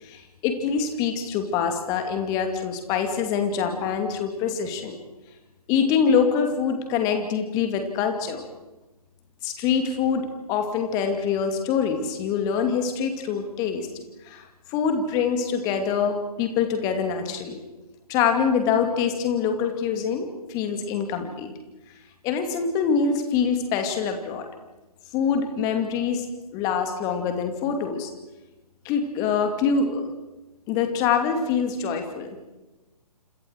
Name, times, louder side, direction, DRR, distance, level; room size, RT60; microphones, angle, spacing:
voice 1, 0.0-4.9 5.7-8.4 9.4-13.9 14.3-14.4 14.7-17.6 18.1-21.5 22.2-24.5 25.1-26.3 26.5-28.1 28.8-30.1 30.7-32.5, left 6 dB, 20° left, 6 dB, 2.7 m, -25 dB
27.5 x 27.5 x 4.8 m, 1.1 s
figure-of-eight pair, 135°, 20 cm